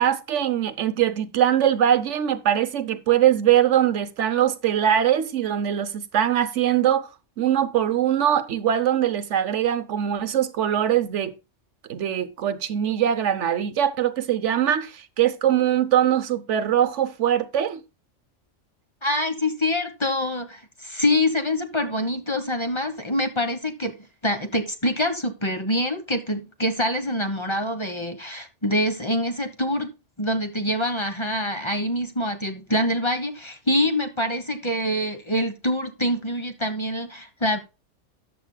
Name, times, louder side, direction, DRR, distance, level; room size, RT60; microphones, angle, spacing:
voice 1, 0.0-7.1 7.4-11.3 11.9-17.8, right 10 dB, 75° right, 1.1 m, -22 dB
voice 2, 19.0-23.9 24.2-29.9 30.2-37.6, left 1 dB, 25° left, 1.2 m, -25 dB
14.0 x 9.3 x 2.2 m
omnidirectional pair, 1.3 m